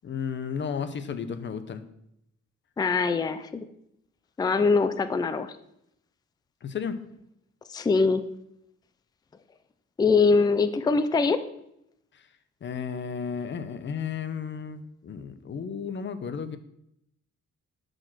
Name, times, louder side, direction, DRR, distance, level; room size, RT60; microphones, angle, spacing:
voice 1, 0.0-1.8 6.6-7.0 12.6-16.6, left 6 dB, 35° left, 11 dB, 0.8 m, -33 dB
voice 2, 2.8-3.7 4.4-5.6 7.7-8.2 10.0-11.4, left 4 dB, 15° left, 11 dB, 0.4 m, -23 dB
11.5 x 5.2 x 6.1 m, 0.78 s
wide cardioid pair, 175°, 31 cm